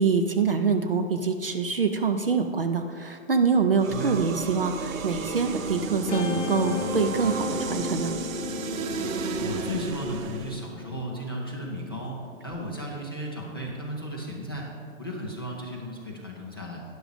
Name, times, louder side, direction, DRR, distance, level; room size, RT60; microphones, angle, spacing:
voice 1, 0.0-8.1, right 5 dB, 45° right, 7 dB, 0.5 m, -25 dB
sound 1, 3.8-10.7, right 5 dB, 75° right, 0.8 m, -33 dB
Guitar, 6.1-12.5, left 6 dB, 60° left, 0.8 m, -36 dB
voice 2, 9.3-14.7 15.0-16.8, equal, 20° left, -4 dB, 0.5 m, -35 dB
10.5 x 6.2 x 4.9 m, 2.2 s
hypercardioid pair, 175°, 40 cm